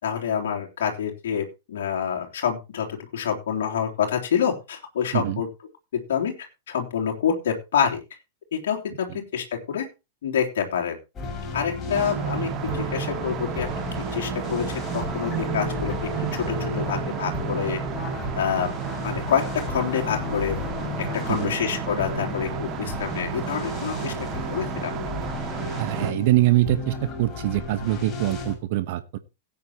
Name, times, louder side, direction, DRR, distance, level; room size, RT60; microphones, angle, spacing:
voice 1, 0.0-5.5 5.9-6.3 6.7-8.0 8.5-9.8 10.2-11.0 11.5-13.7 14.1-15.9 16.3-17.8 18.3-18.7 19.0-20.6 21.0-24.1 24.5-24.9, left 8 dB, 65° left, 0 dB, 3.3 m, -27 dB
sound 1, 11.1-28.5, left 3 dB, 25° left, 5.7 m, -33 dB
sound 2, 11.9-26.1, right 10 dB, 35° right, 2.1 m, -32 dB
voice 2, 25.7-29.2, right 16 dB, 55° right, 12 dB, 1.1 m, -24 dB
17.5 x 9.1 x 3.0 m, 0.27 s
figure-of-eight pair, 100°, 0 cm